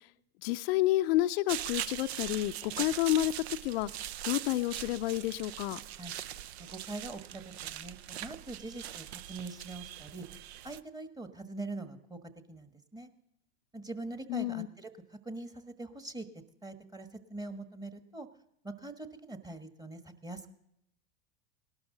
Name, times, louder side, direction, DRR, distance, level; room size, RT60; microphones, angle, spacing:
voice 1, 0.4-3.3 3.6-3.9 4.2-5.8 14.3-14.7, left 16 dB, 65° left, 11 dB, 0.5 m, -29 dB
sound 1, 1.5-10.8, right 12 dB, 75° right, 0.6 m, -41 dB
voice 2, 6.7-10.2 10.6-12.2 12.5-13.1 13.7-16.3 16.6-18.3 18.6-20.5, right 2 dB, 10° right, 8 dB, 1.4 m, -43 dB
18.0 x 12.0 x 3.9 m, 0.79 s
hypercardioid pair, 95°, 32 cm